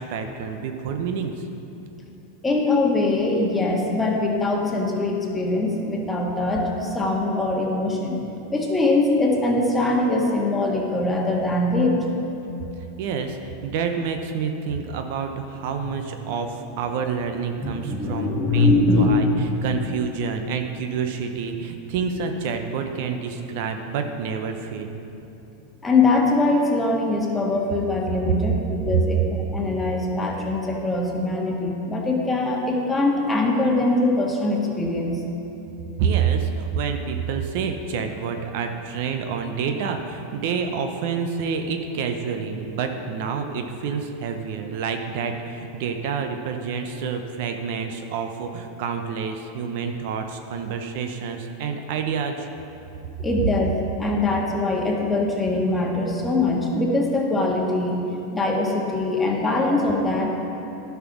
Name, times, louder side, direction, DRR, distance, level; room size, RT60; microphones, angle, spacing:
voice 1, 0.0-1.4 13.0-24.9 28.9-29.0 36.0-52.5, right 6 dB, 65° right, 6 dB, 0.8 m, -28 dB
voice 2, 2.4-12.0 17.6-19.2 25.8-29.2 29.5-35.2 53.2-53.7 54.0-58.0 58.3-60.3, left 2 dB, 15° left, -1 dB, 1.7 m, -22 dB
11.0 x 5.9 x 6.1 m, 2.9 s
hypercardioid pair, 115°, 0 cm